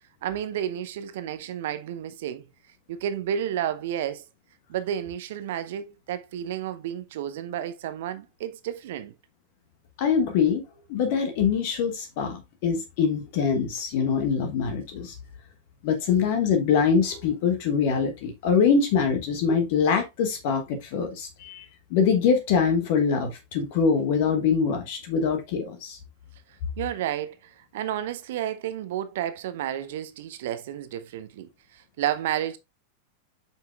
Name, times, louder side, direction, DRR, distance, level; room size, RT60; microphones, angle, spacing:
voice 1, 0.2-2.5 2.9-4.2 4.7-9.1 26.5-32.6, right 10 dB, 55° right, 0.7 m, -31 dB
voice 2, 10.0-10.6 10.9-15.1 15.8-26.0, left 6 dB, 50° left, 1.3 m, -24 dB
8.0 x 5.6 x 2.4 m
figure-of-eight pair, 90°, 0 cm